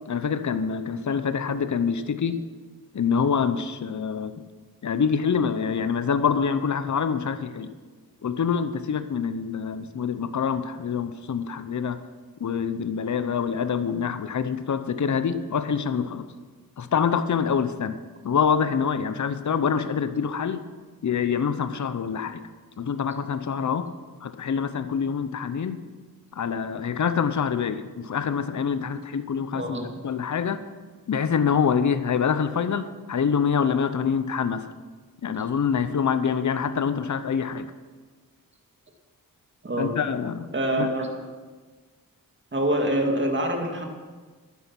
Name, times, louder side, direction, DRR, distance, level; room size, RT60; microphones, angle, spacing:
voice 1, 0.1-2.4 2.9-4.3 4.8-7.7 8.2-12.0 12.4-16.3 16.8-18.0 18.2-20.7 21.0-22.4 22.8-23.8 24.2-25.8 26.3-29.8 30.0-30.6 31.1-34.6 35.2-37.7 39.8-40.5 40.8-40.9, left 6 dB, 55° left, 11 dB, 0.8 m, -25 dB
voice 2, 29.5-29.9 39.6-40.0 40.5-41.1 42.5-43.8, right 1 dB, 30° right, 2 dB, 2.2 m, -25 dB
11.5 x 9.9 x 6.0 m, 1.4 s
wide cardioid pair, 80°, 35 cm